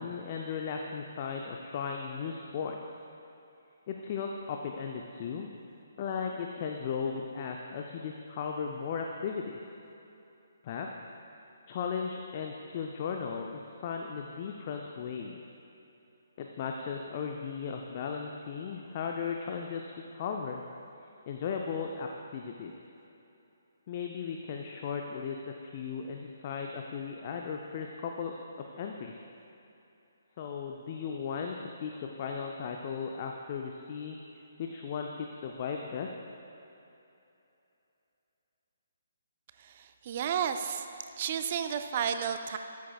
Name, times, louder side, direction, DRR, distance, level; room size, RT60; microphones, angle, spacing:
voice 1, 0.0-2.8 3.9-5.5 6.0-9.6 10.6-10.9 11.7-15.4 16.4-19.8 20.1-20.6 21.3-22.7 23.9-25.4 25.6-28.3 28.7-29.1 30.4-34.2 34.6-36.1, left 6 dB, 40° left, 2 dB, 0.5 m, -36 dB
voice 2, 39.6-40.9 41.2-42.6, right 8 dB, 40° right, 8 dB, 0.4 m, -32 dB
12.0 x 8.3 x 2.3 m, 2.9 s
figure-of-eight pair, 135°, 0 cm